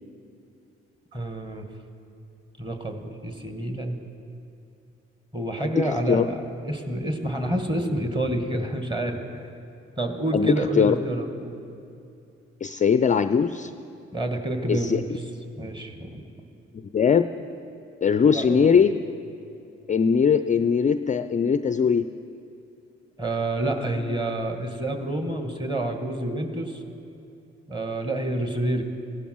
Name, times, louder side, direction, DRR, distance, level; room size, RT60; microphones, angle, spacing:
voice 1, 1.1-1.7 2.6-4.0 5.3-6.3 6.6-9.4 10.0-11.6 14.1-15.1 15.6-16.2 18.3-18.8 23.2-26.8 27.7-28.8, right 1 dB, 15° right, 5 dB, 1.9 m, -28 dB
voice 2, 5.7-6.3 10.3-11.0 12.6-13.7 14.7-15.0 16.7-17.2 18.0-18.9 19.9-22.1, left 6 dB, 25° left, 12 dB, 0.4 m, -21 dB
15.5 x 12.0 x 4.6 m, 2.6 s
hypercardioid pair, 40°, 32 cm